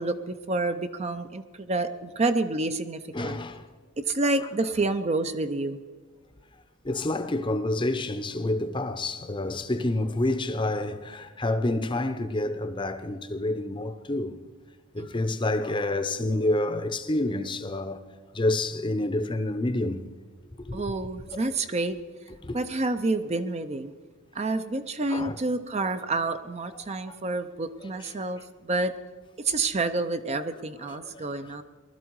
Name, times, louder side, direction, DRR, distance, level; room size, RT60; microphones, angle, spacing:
voice 1, 0.0-3.4 4.1-5.8 15.0-15.3 20.7-22.0 22.5-23.9 24.3-28.9 29.4-31.6, right 2 dB, 30° right, 0.5 m, -28 dB
voice 2, 3.1-3.6 6.8-14.4 14.9-18.0 18.3-20.0 20.7-21.4 22.4-22.6 25.1-25.4 27.1-27.2 27.8-27.9 30.9-31.5, left 2 dB, 25° left, 0.7 m, -28 dB
19.0 x 12.5 x 4.7 m
head